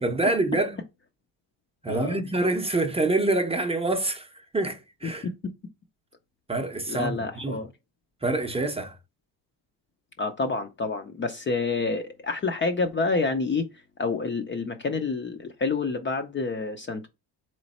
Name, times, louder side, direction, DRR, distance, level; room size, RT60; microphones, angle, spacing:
voice 1, 0.0-0.8 1.8-4.3 4.5-5.3 6.5-7.6 8.2-8.9, right 2 dB, 15° right, 0.7 m, -26 dB
voice 2, 1.9-2.2 5.2-5.3 6.9-7.7 10.2-17.1, left 4 dB, 30° left, 0.5 m, -28 dB
3.9 x 3.1 x 4.1 m
cardioid pair, 100°, 42 cm